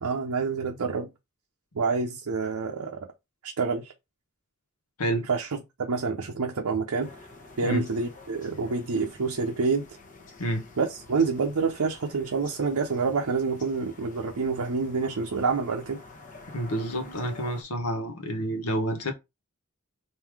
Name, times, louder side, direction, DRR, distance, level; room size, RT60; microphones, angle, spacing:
voice 1, 0.0-1.1 1.7-3.1 3.4-3.9 5.3-7.1 7.6-9.9 10.8-16.0, right 4 dB, 85° right, 0.7 m, -27 dB
sound 1, 7.0-17.6, left 3 dB, 35° left, 0.9 m, -49 dB
voice 2, 16.5-19.1, right 1 dB, 85° left, 1.1 m, -29 dB
3.7 x 2.7 x 4.6 m
head